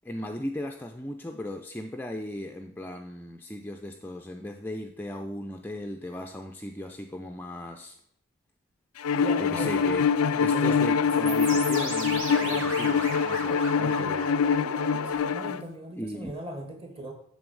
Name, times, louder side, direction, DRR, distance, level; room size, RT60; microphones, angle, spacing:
voice 1, 0.0-8.0 9.4-10.1 10.3-14.3 16.0-16.3, left 1 dB, 10° left, 3 dB, 0.4 m, -37 dB
Bowed string instrument, 9.0-15.6, left 6 dB, 85° left, 0.4 m, -24 dB
voice 2, 9.1-9.8 10.4-11.2 12.4-12.8 15.0-17.1, right 1 dB, 25° right, 4 dB, 1.4 m, -39 dB
sound 1, 11.3-15.1, right 3 dB, 65° right, 1.4 m, -36 dB
8.0 x 7.0 x 5.3 m, 0.67 s
head